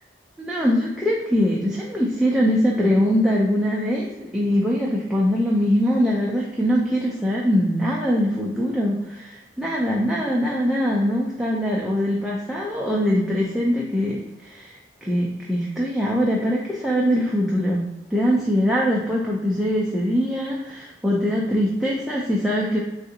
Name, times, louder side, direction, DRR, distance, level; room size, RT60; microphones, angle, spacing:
voice 1, 0.4-17.8 18.1-22.8, equal, 5° right, -4 dB, 0.3 m, -22 dB
3.6 x 2.4 x 2.6 m, 1.0 s
head